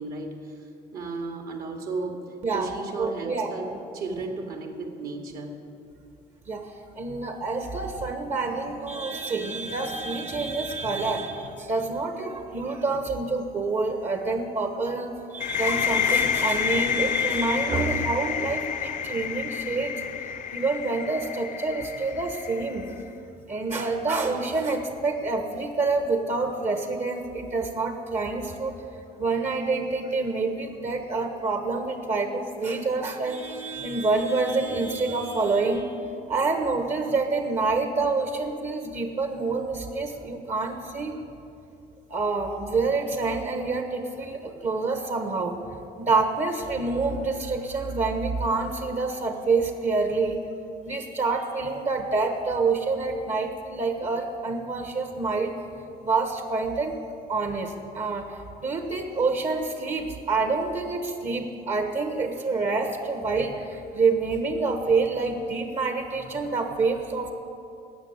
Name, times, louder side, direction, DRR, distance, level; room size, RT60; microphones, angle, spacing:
voice 1, 0.0-2.2 2.5-3.7 3.9-5.6, right 3 dB, 60° right, 2 dB, 2.2 m, -34 dB
voice 2, 3.0-3.8 6.5-20.0 20.5-22.9 23.5-28.8 29.2-35.9 36.3-41.2 42.1-45.6 46.0-50.4 50.8-55.5 56.0-57.0 57.3-67.3, right 3 dB, 45° right, 5 dB, 1.4 m, -27 dB
sound 1, 15.4-22.9, left 8 dB, 50° left, 0.6 m, -28 dB
17.0 x 6.6 x 9.6 m, 2.6 s
cardioid pair, 110°, 17 cm